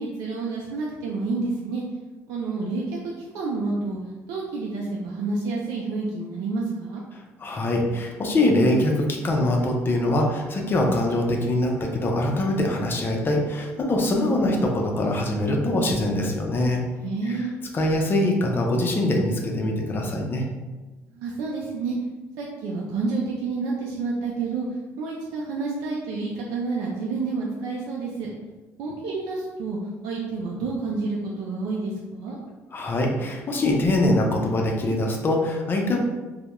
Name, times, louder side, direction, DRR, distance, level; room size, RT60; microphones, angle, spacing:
voice 1, 0.0-1.8 2.3-4.0 4.3-7.0 17.0-17.5 21.2-22.0 22.4-24.7 25.0-28.3 28.8-29.8 30.0-32.4, right 3 dB, 80° right, -3 dB, 0.4 m, -29 dB
voice 2, 7.4-16.8 17.3-17.5 17.7-20.5 32.7-36.0, left 1 dB, 35° left, 1 dB, 0.4 m, -23 dB
2.2 x 2.0 x 2.9 m, 1.2 s
cardioid pair, 90°, 6 cm